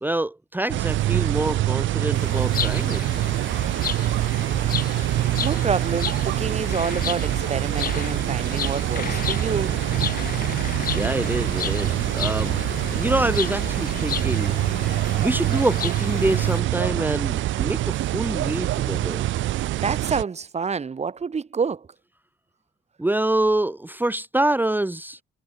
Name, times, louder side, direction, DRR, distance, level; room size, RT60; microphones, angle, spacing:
voice 1, 0.0-3.4 10.9-12.5 12.9-14.6 15.2-19.3 23.0-25.2, right 1 dB, 10° right, 1.5 m, -26 dB
sound 1, 0.7-20.2, right 15 dB, 75° right, 0.6 m, -25 dB
sound 2, 2.1-16.6, left 9 dB, 45° left, 0.7 m, -33 dB
voice 2, 5.4-9.8 19.8-21.9, right 5 dB, 35° right, 1.7 m, -28 dB
cardioid pair, 90°, 20 cm